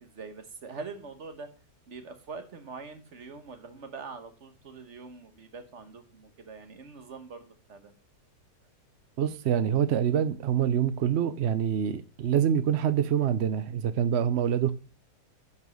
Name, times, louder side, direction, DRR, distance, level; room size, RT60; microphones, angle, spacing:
voice 1, 0.0-1.5 1.9-7.9, right 4 dB, 45° right, 1.5 m, -43 dB
voice 2, 9.2-14.7, right 9 dB, 65° right, 0.6 m, -26 dB
10.5 x 5.5 x 6.3 m
omnidirectional pair, 1.8 m